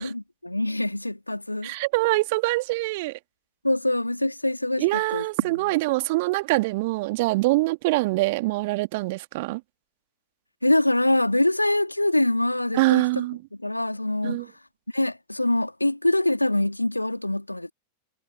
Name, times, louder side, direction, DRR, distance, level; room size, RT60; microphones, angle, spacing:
voice 1, 0.0-1.7 3.6-5.7 10.6-13.3 13.5-14.5 14.9-17.7, left 1 dB, 85° left, 3.1 m, -24 dB
voice 2, 1.6-3.2 4.8-9.6 12.7-13.4 14.2-14.4, right 22 dB, 50° right, 2.4 m, -24 dB
figure-of-eight pair, 90°, 0 cm